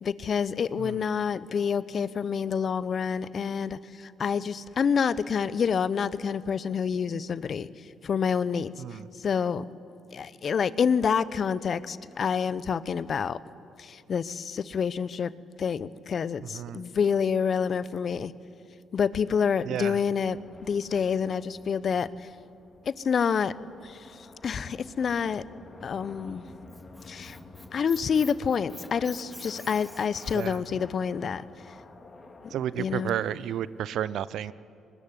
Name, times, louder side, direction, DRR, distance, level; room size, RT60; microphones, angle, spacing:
voice 1, 0.0-7.7 8.0-8.7 9.2-9.6 10.1-13.4 13.8-15.3 15.6-18.3 18.9-20.4 20.6-22.1 22.9-23.5 23.8-24.0 24.4-25.4 25.8-26.4 27.1-27.4 27.7-31.4 32.8-33.2, left 6 dB, 55° left, 18 dB, 0.8 m, -27 dB
voice 2, 16.4-16.8 19.6-20.0 30.3-30.6 32.5-34.5, right 10 dB, 70° right, 19 dB, 0.6 m, -32 dB
sound 1, 20.2-33.4, left 3 dB, 35° left, 3.3 m, -50 dB
Squeak, 26.4-30.7, left 1 dB, 5° left, 2.7 m, -46 dB
23.0 x 20.5 x 9.8 m, 2.6 s
hypercardioid pair, 50°, 0 cm